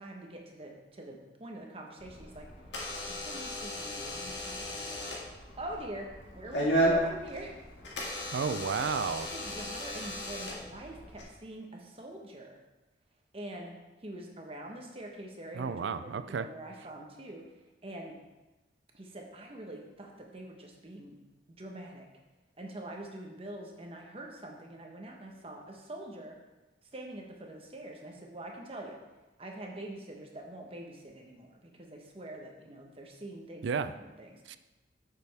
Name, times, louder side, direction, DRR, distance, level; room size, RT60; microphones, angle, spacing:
voice 1, 0.0-2.5 3.1-5.0 5.6-7.6 9.3-12.5 13.3-13.7 14.0-17.4 17.8-18.2 18.9-21.1 21.5-22.1 22.6-26.4 26.9-29.0 29.4-34.4, right 1 dB, 30° right, 1 dB, 1.1 m, -44 dB
Door / Alarm, 2.0-11.2, equal, 80° left, 1.9 m, -35 dB
voice 2, 8.3-9.3 15.5-16.5 33.6-33.9 34.5-34.6, right 5 dB, 80° right, 12 dB, 0.4 m, -32 dB
8.1 x 6.8 x 3.4 m, 1.1 s
head